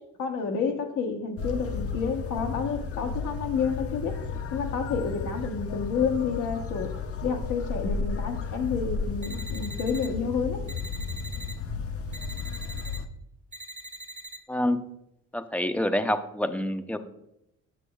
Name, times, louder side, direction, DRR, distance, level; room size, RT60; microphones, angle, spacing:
voice 1, 0.2-4.2 4.5-6.9 7.2-10.6, left 6 dB, 85° left, 1.0 m, -29 dB
sound 1, 1.4-13.1, left 4 dB, 50° left, 0.6 m, -33 dB
sound 2, 9.2-10.1 10.7-11.5 12.1-13.0 13.5-14.4, right 1 dB, 25° right, 0.8 m, -42 dB
voice 2, 14.5-14.8 15.3-17.0, left 1 dB, 5° left, 0.5 m, -27 dB
9.8 x 6.1 x 2.3 m
cardioid pair, 90°, 30 cm